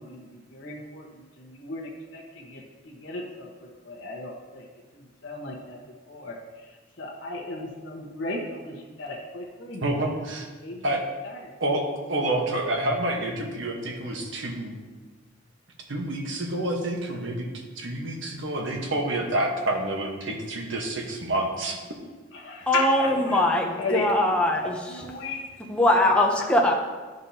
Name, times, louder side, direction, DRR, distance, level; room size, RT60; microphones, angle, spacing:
voice 1, 0.0-4.7 4.9-5.8 6.1-10.2 10.6-10.8 11.2-11.5 22.3-23.4 23.7-24.3 24.9-25.4, left 3 dB, 65° left, -2 dB, 1.1 m, -36 dB
voice 2, 9.8-10.5 10.8-11.0 11.6-14.8 15.9-17.5 17.8-21.8, right 1 dB, 70° right, 1 dB, 1.2 m, -28 dB
voice 3, 22.7-24.8 25.7-26.7, left 1 dB, 5° left, 0 dB, 0.7 m, -21 dB
10.5 x 5.3 x 2.8 m, 1.3 s
head